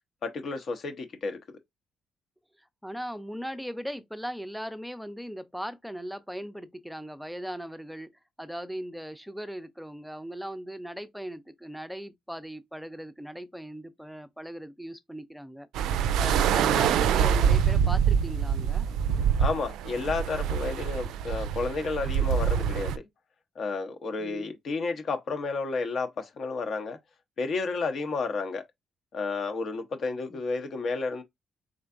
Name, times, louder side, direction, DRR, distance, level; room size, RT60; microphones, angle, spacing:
voice 1, 0.2-1.4 19.4-23.0 23.6-27.0 27.4-28.6 29.1-31.2, left 4 dB, 55° left, 0.8 m, -31 dB
voice 2, 2.8-8.1 8.4-15.7 15.9-18.9 24.2-24.6 30.3-30.4, equal, ahead, 0.5 m, -38 dB
sound 1, 15.7-23.0, right 8 dB, 90° right, 0.3 m, -25 dB
3.8 x 3.3 x 2.5 m
cardioid pair, 90°, 0 cm